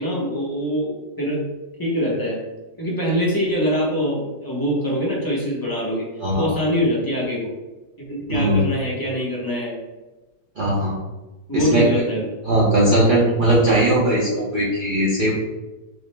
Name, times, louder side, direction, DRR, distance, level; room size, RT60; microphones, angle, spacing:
voice 1, 0.0-1.4 1.8-2.5 2.8-7.5 8.0-9.8 11.5-12.3, equal, 20° left, -5 dB, 0.6 m, -24 dB
voice 2, 8.3-8.6 10.6-10.9 11.5-12.0 12.4-15.3, right 1 dB, 45° right, -6 dB, 0.6 m, -19 dB
6.0 x 2.0 x 3.3 m, 1.1 s
omnidirectional pair, 1.9 m